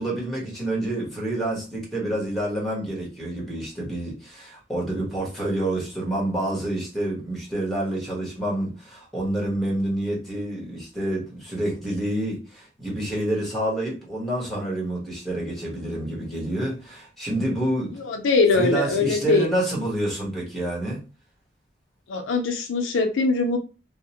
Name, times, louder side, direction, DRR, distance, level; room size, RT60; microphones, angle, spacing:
voice 1, 0.0-18.1 18.5-21.0, right 1 dB, ahead, 1.1 m, -28 dB
voice 2, 17.9-19.5 22.1-23.6, left 3 dB, 85° left, 0.5 m, -22 dB
2.7 x 2.0 x 2.8 m
head